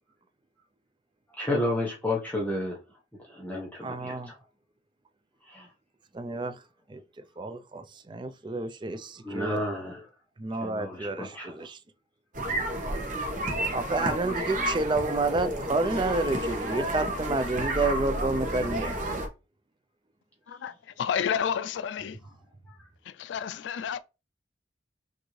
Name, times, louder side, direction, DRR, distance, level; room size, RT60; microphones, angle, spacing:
voice 1, 1.4-2.8 3.2-4.4 5.4-5.7 9.2-10.1 10.5-11.7 22.7-22.8, left 1 dB, 10° left, 0.9 m, -32 dB
voice 2, 3.8-4.3 6.1-6.6 6.9-9.6 10.4-11.8 13.7-18.9, right 3 dB, 25° right, 0.4 m, -30 dB
sound 1, 12.3-19.3, right 1 dB, 45° right, 1.0 m, -31 dB
voice 3, 20.5-22.2 23.1-24.0, left 8 dB, 85° left, 0.3 m, -30 dB
6.1 x 2.6 x 3.1 m
head